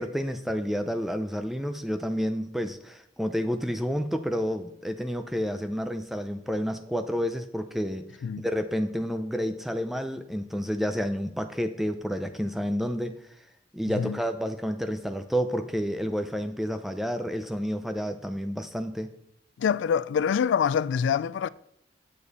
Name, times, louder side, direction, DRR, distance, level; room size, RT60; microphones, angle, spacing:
voice 1, 0.0-8.0 8.4-13.2 13.7-19.1, equal, ahead, 0.5 m, -30 dB
voice 2, 19.6-21.5, left 7 dB, 90° left, 0.3 m, -25 dB
8.9 x 7.0 x 4.1 m
head